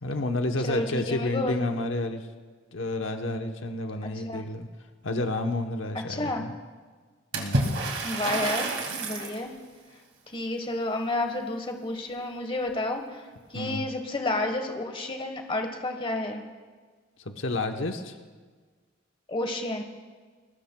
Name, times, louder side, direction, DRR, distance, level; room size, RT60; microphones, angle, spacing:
voice 1, 0.0-2.3 2.7-4.7 5.0-6.5 7.3-7.6 13.5-13.8 17.3-18.1, left 2 dB, 75° left, 5 dB, 1.0 m, -30 dB
voice 2, 0.6-1.7 4.0-4.5 6.1-6.4 8.0-8.7 8.9-9.5 10.3-13.2 13.5-16.4 19.3-19.8, left 2 dB, 25° left, 5 dB, 1.2 m, -31 dB
Water / Splash splatter, 7.3-9.4, right 2 dB, 70° right, 2.3 m, -28 dB
21.5 x 19.5 x 2.3 m, 1.4 s
head